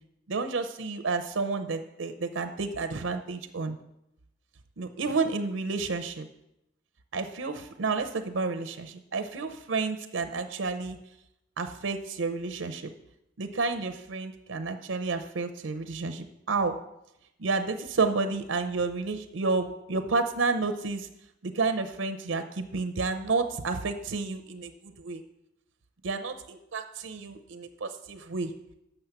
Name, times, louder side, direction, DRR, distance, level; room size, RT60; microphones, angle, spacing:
voice 1, 0.3-3.8 4.8-6.3 7.1-11.0 11.6-12.9 13.4-16.8 17.4-21.1 21.4-25.2 26.0-28.5, right 4 dB, 85° right, 8 dB, 0.6 m, -30 dB
7.8 x 6.4 x 5.8 m, 0.85 s
head